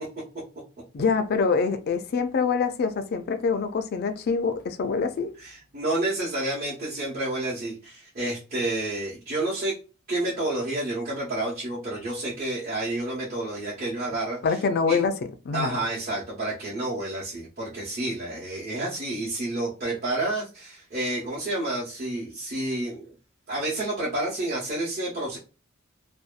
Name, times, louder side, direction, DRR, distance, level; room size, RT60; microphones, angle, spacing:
voice 1, 0.9-5.3 14.4-15.1 15.5-15.8, left 5 dB, 50° left, 0.3 m, -25 dB
voice 2, 5.4-9.8 10.1-14.4 14.9-15.0 15.5-23.1 23.5-25.4, right 2 dB, 45° right, 0.8 m, -29 dB
2.6 x 2.2 x 2.4 m
head